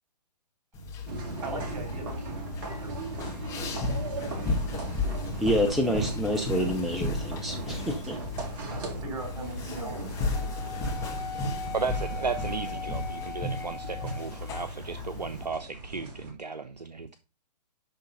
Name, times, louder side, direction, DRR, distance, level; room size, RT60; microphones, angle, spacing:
sound 1, 0.7-15.5, left 2 dB, 15° left, 1.9 m, -35 dB
sound 2, 1.1-16.3, right 2 dB, 30° right, 1.8 m, -38 dB
voice 1, 1.2-2.4 2.8-3.1 6.5-6.7 8.6-10.6, right 2 dB, 50° right, 4.4 m, -41 dB
voice 2, 5.4-8.2, equal, ahead, 0.5 m, -28 dB
Wind instrument woodwind instrument, 10.3-14.5, left 4 dB, 75° left, 1.4 m, -39 dB
voice 3, 11.7-17.2, right 5 dB, 75° right, 0.7 m, -35 dB
11.0 x 3.8 x 5.4 m
figure-of-eight pair, 125°, 21 cm